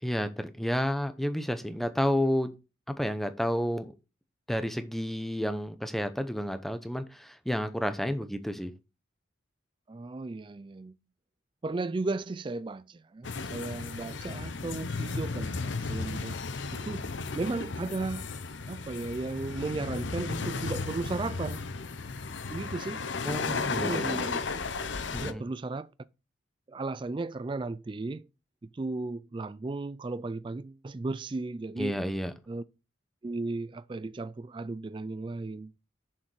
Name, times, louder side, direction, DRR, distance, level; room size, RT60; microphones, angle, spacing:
voice 1, 0.0-2.5 2.9-3.9 4.5-8.7 23.3-24.3 25.1-25.4 31.8-32.3, equal, ahead, 0.7 m, -30 dB
voice 2, 9.9-10.9 11.6-16.4 16.7-17.1 17.3-18.3 18.7-21.6 22.5-23.0 23.7-24.4 25.2-25.9 26.7-28.2 28.7-32.0 32.5-32.6 33.2-35.7, right 3 dB, 25° right, 0.3 m, -35 dB
sound 1, 13.2-25.3, left 4 dB, 60° left, 0.7 m, -34 dB
7.1 x 6.6 x 4.7 m
head